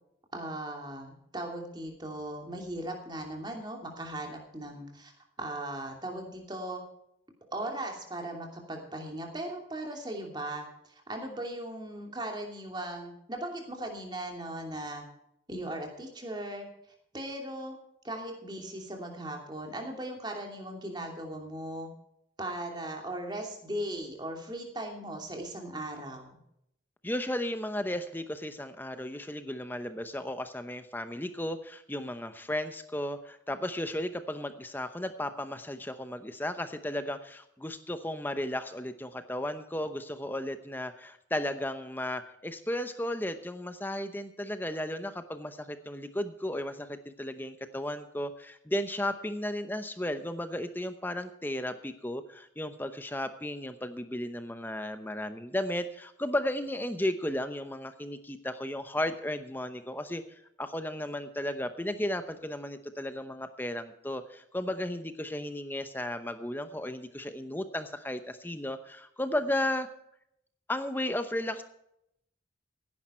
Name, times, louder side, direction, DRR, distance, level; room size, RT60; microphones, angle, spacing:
voice 1, 0.3-5.1 5.4-6.8 7.5-15.0 15.5-16.6 17.1-17.8 18.0-21.9 22.4-26.4, right 1 dB, 25° right, 2 dB, 2.8 m, -38 dB
voice 2, 27.0-69.9 70.7-71.6, left 1 dB, 10° left, 9 dB, 0.8 m, -34 dB
16.5 x 10.5 x 4.4 m, 0.76 s
head